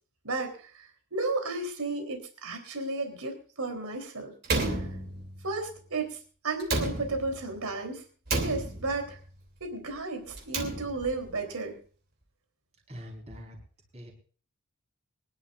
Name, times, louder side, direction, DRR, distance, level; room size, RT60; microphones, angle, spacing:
voice 1, 0.2-4.3 4.7-4.9 5.4-6.2 6.4-8.1 8.4-9.2 9.6-11.8, right 3 dB, 85° right, 5 dB, 3.6 m, -33 dB
Slam, 4.4-5.6 6.6-7.5 8.3-9.2 10.3-11.2, right 2 dB, 45° right, 3.0 m, -31 dB
voice 2, 12.9-13.6 13.9-14.1, equal, 30° right, 1 dB, 4.6 m, -43 dB
24.5 x 11.0 x 2.5 m, 0.40 s
head